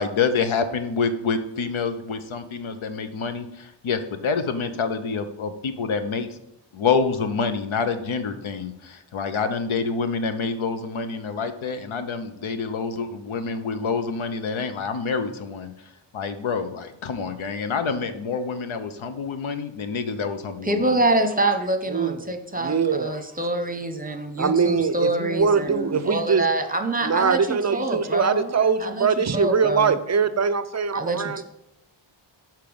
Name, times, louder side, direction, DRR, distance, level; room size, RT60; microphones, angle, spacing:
voice 1, 0.0-6.3 6.7-15.7 16.1-20.9, left 5 dB, 75° left, 9 dB, 0.9 m, -27 dB
voice 2, 20.6-29.1 29.3-30.0 30.9-31.4, right 2 dB, 15° right, 6 dB, 1.0 m, -26 dB
voice 3, 21.9-22.2 22.6-23.1 24.4-26.5 27.0-31.4, right 5 dB, 35° right, 12 dB, 0.5 m, -22 dB
6.7 x 4.6 x 5.3 m, 0.81 s
cardioid pair, 70°, 49 cm